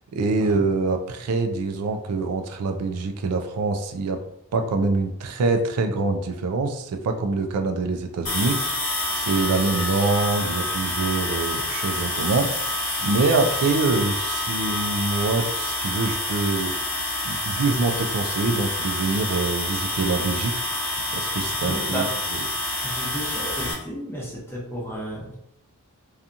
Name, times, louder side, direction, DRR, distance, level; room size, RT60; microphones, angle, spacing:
voice 1, 0.1-4.2 4.5-16.7 17.2-20.6 21.1-22.1, right 3 dB, 90° right, 6 dB, 0.4 m, -25 dB
sound 1, 8.2-23.7, left 1 dB, 65° left, 1.0 m, -27 dB
voice 2, 21.6-22.4 22.8-25.3, right 1 dB, 10° left, -5 dB, 0.6 m, -33 dB
2.7 x 2.3 x 2.5 m, 0.79 s
head